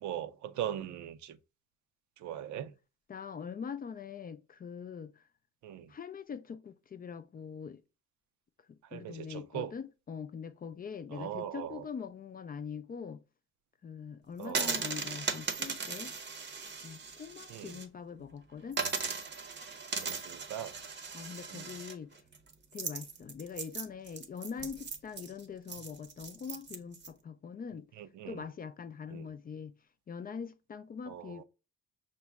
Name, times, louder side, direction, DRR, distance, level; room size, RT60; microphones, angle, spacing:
voice 1, 0.0-1.4 2.2-2.7 5.6-5.9 8.9-9.7 11.1-11.8 14.4-14.8 17.5-17.7 20.0-20.7 21.5-21.7 28.0-28.4 29.1-29.3 31.1-31.4, right 10 dB, 75° right, 0.5 m, -40 dB
voice 2, 3.1-5.2 5.9-7.8 8.9-13.2 13.8-16.1 16.8-18.8 21.1-22.2 22.7-27.9 28.3-29.7 30.1-31.4, left 6 dB, 30° left, 0.4 m, -43 dB
sound 1, 14.4-17.9 18.2-18.3 18.7-27.1, right 5 dB, 35° right, 0.7 m, -38 dB
5.9 x 2.1 x 3.4 m
cardioid pair, 90°, 30 cm